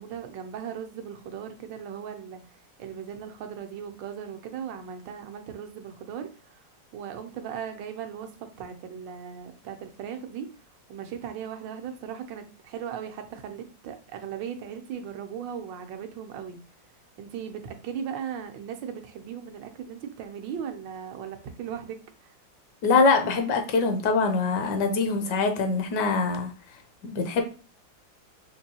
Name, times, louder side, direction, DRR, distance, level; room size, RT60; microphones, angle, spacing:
voice 1, 0.0-6.6 6.9-10.5 10.9-16.6 17.2-22.3, right 8 dB, 80° right, 1.3 m, -38 dB
voice 2, 22.8-26.5 27.0-27.4, left 4 dB, 75° left, 1.2 m, -23 dB
4.5 x 2.6 x 2.8 m
omnidirectional pair, 2.0 m